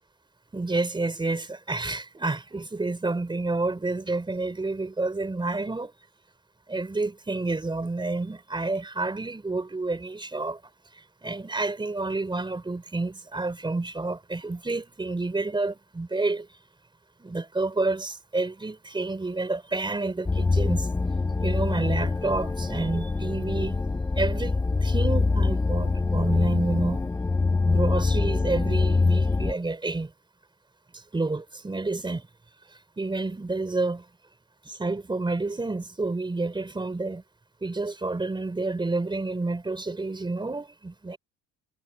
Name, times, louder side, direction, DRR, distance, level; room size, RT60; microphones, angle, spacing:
voice 1, 0.5-5.9 6.7-10.6 11.2-16.5 17.2-20.9 21.4-23.8 24.1-27.1 27.6-30.1 30.9-32.3 33.0-34.0 34.7-37.2 37.6-41.2, right 3 dB, 15° right, 4.0 m, -29 dB
sound 1, 20.3-29.5, left 3 dB, 10° left, 0.4 m, -24 dB
cardioid pair, 120°, 34 cm